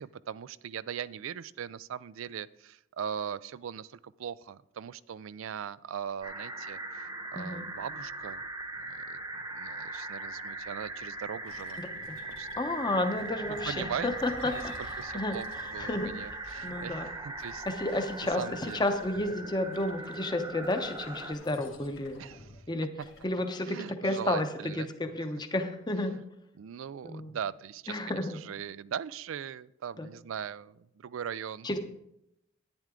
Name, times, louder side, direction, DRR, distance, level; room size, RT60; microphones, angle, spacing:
voice 1, 0.0-8.4 8.8-9.2 9.5-11.8 12.3-12.5 13.7-14.1 14.4-14.6 15.0-15.5 15.7-17.0 17.2-17.7 18.4-18.8 22.2-22.4 23.6-24.9 26.0-26.1 26.6-28.0 28.4-31.7, right 8 dB, 75° right, 19 dB, 0.4 m, -39 dB
sound 1, 6.2-21.3, right 2 dB, 20° right, 0.9 m, -40 dB
voice 2, 7.4-7.7 11.8-12.2 12.5-14.7 15.1-16.4 16.6-17.1 17.6-22.2 22.7-22.9 23.2-26.1 27.0-27.4 27.9-28.4 30.0-30.1 31.6-31.8, left 1 dB, 20° left, 7 dB, 0.8 m, -32 dB
sound 2, 11.4-12.7 13.1-16.1 16.4-19.3 19.7-22.7 23.0-23.3, left 3 dB, 70° left, 1.9 m, -53 dB
10.5 x 9.9 x 3.7 m, 0.83 s
head